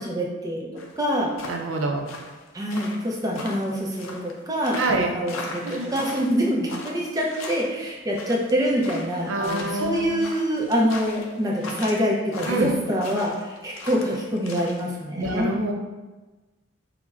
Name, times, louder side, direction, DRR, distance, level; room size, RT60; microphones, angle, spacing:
voice 1, 0.1-0.7 1.0-1.3 2.5-15.5, equal, 15° right, -2 dB, 0.4 m, -25 dB
sound 1, 0.8-14.8, left 2 dB, 85° left, 0.5 m, -38 dB
voice 2, 1.5-2.1 4.8-5.1 5.6-5.9 9.3-10.2 12.5-12.7 15.2-15.9, right 2 dB, 80° right, 2 dB, 0.5 m, -26 dB
5.8 x 2.0 x 2.3 m, 1.2 s
head